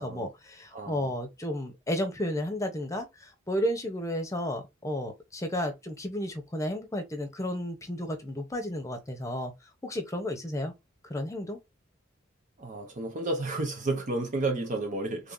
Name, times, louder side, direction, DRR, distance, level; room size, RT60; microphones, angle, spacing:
voice 1, 0.0-3.1 3.5-9.5 9.8-10.7 11.1-11.6, left 1 dB, 15° left, 0.9 m, -32 dB
voice 2, 0.7-1.1 12.6-15.3, right 2 dB, 40° right, 0.7 m, -32 dB
3.4 x 2.8 x 3.8 m
head